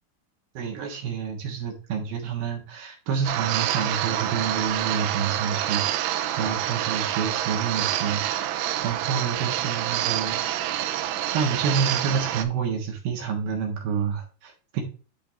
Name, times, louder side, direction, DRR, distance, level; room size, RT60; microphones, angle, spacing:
voice 1, 0.5-8.2 8.8-10.4 11.3-14.8, right 6 dB, 65° right, 1 dB, 2.7 m, -28 dB
sound 1, 3.3-12.5, right 12 dB, 80° right, 2.7 m, -27 dB
10.5 x 5.1 x 2.5 m, 0.35 s
omnidirectional pair, 5.5 m